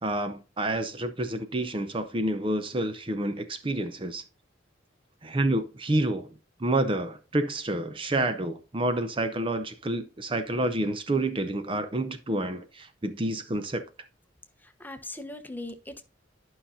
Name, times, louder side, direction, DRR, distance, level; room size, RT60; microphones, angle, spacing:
voice 1, 0.0-4.2 5.2-6.3 6.6-13.8, right 1 dB, 30° right, 0.6 m, -29 dB
voice 2, 14.6-16.0, left 2 dB, 10° left, 0.9 m, -40 dB
11.5 x 5.6 x 2.7 m
head